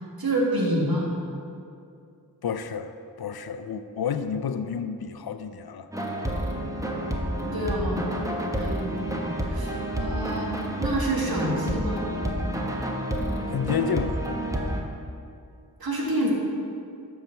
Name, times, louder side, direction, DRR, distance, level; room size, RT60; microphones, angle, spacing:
voice 1, 0.2-1.1 7.5-10.5 10.8-12.0 15.8-16.3, right 1 dB, 70° right, -3 dB, 1.9 m, -28 dB
voice 2, 2.4-2.9 3.2-5.9 13.5-14.2, left 7 dB, 75° left, 10 dB, 0.5 m, -30 dB
sound 1, 5.9-14.8, right 1 dB, 10° right, 1.2 m, -29 dB
9.1 x 4.9 x 6.8 m, 2.5 s
wide cardioid pair, 45°, 38 cm